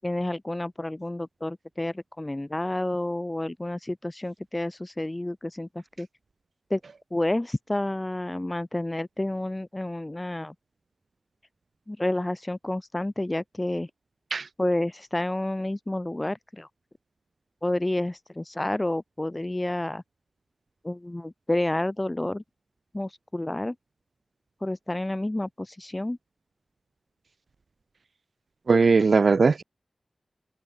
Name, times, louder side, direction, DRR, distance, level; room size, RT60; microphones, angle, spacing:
voice 1, 0.0-6.1 6.7-6.8 7.1-10.5 11.9-13.9 14.6-16.7 17.6-20.0 20.8-22.4 22.9-23.8 24.6-26.2, left 1 dB, 20° left, 5.8 m, -30 dB
voice 2, 28.7-29.6, right 4 dB, 70° right, 4.3 m, -19 dB
cardioid pair, 55°, 0 cm